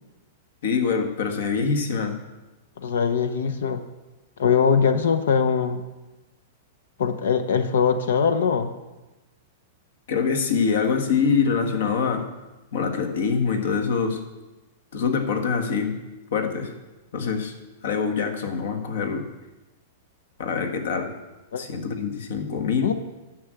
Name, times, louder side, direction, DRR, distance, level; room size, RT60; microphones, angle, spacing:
voice 1, 0.6-2.1 10.1-12.3 12.7-14.2 14.9-15.9 16.3-16.7 17.1-17.5 17.8-19.2 20.4-21.1 21.6-22.9, left 5 dB, 65° left, 6 dB, 1.6 m, -24 dB
voice 2, 2.8-3.8 4.4-5.8 7.0-8.7 21.5-21.6 22.8-22.9, left 6 dB, 85° left, 9 dB, 0.8 m, -21 dB
10.0 x 6.2 x 7.7 m, 1.1 s
supercardioid pair, 170°, 0 cm